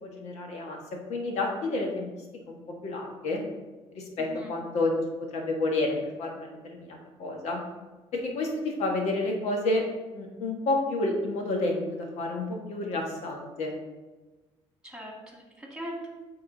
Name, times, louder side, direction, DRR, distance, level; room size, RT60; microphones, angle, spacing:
voice 1, 0.0-0.8 1.1-2.1 2.5-3.4 3.9-4.9 5.3-7.6 8.1-9.8 10.1-13.7, left 2 dB, 75° left, 1 dB, 1.4 m, -30 dB
voice 2, 4.2-4.5 14.8-16.1, equal, 5° right, -1 dB, 2.0 m, -40 dB
8.4 x 3.8 x 3.9 m, 1.2 s
cardioid pair, 100°, 11 cm